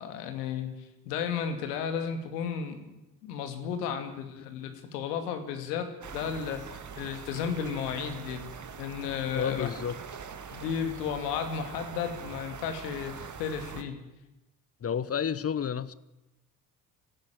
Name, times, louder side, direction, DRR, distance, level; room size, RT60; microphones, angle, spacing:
voice 1, 0.0-3.0 3.2-8.4 8.8-9.7 10.5-14.0, left 7 dB, 75° left, 2.7 m, -34 dB
sound 1, 6.0-13.8, right 6 dB, 35° right, 2.4 m, -43 dB
voice 2, 9.3-10.0 14.8-15.9, left 7 dB, 30° left, 1.1 m, -30 dB
19.0 x 16.0 x 9.2 m
hypercardioid pair, 55°, 48 cm